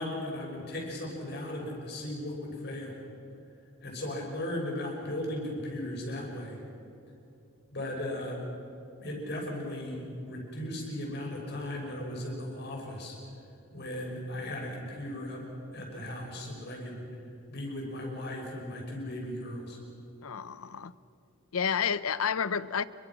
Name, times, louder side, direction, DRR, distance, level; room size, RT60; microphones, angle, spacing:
voice 1, 0.0-3.0 3.8-6.6 7.7-8.4 9.0-13.2 13.7-15.4 15.7-17.0 17.5-19.8, left 1 dB, 50° left, -1 dB, 6.4 m, -37 dB
voice 2, 20.2-20.9 21.5-22.8, left 7 dB, 90° left, 17 dB, 0.7 m, -30 dB
28.5 x 23.0 x 6.1 m, 2.8 s
head